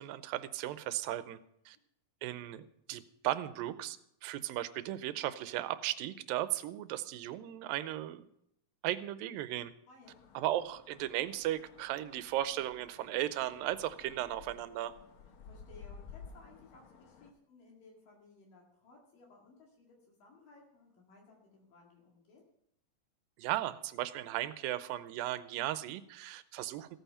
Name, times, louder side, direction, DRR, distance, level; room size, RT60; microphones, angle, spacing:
voice 1, 0.0-1.4 1.7-1.8 2.2-8.3 8.8-9.7 10.4-14.9 23.4-27.0, right 14 dB, 85° right, 13 dB, 2.4 m, -36 dB
voice 2, 9.9-10.2 15.4-22.4, left 3 dB, 70° left, -2 dB, 3.8 m, -59 dB
sound 1, 10.0-17.3, left 5 dB, 90° left, 1.1 m, -54 dB
16.0 x 9.2 x 5.6 m, 0.75 s
omnidirectional pair, 4.1 m